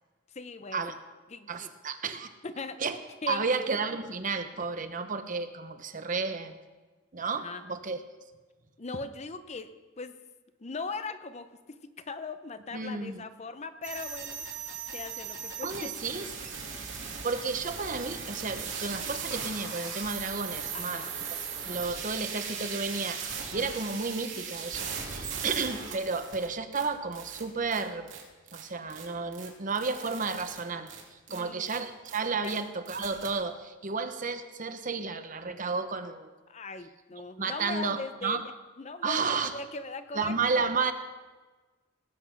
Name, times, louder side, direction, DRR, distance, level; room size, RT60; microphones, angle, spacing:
voice 1, 0.3-0.9 1.3-1.7 2.4-2.8 3.2-3.5 7.3-7.6 8.8-10.1 10.6-14.4 14.9-15.9 20.7-21.1 31.3-31.7 32.4-32.5 36.5-38.4 38.8-40.3, left 3 dB, 35° left, 10 dB, 0.6 m, -39 dB
voice 2, 1.5-2.3 2.8-3.0 3.3-6.6 7.1-8.0 12.7-13.2 15.6-16.3 17.2-21.0 21.7-28.2 28.5-36.3 37.4-38.4 39.0-39.5 40.1-40.9, right 4 dB, 40° right, 8 dB, 0.9 m, -32 dB
sound 1, 13.8-26.5 26.7-26.8 27.1-27.4 27.7-27.8 28.1-28.2 28.5-28.6 28.9-29.0 29.3-29.5 29.7-30.6 30.9-31.0 31.3-31.4 31.7-31.8 32.0-32.2 32.4-32.6 32.9-33.3, right 6 dB, 65° right, 3.0 m, -38 dB
19.0 x 8.4 x 5.8 m, 1.3 s
head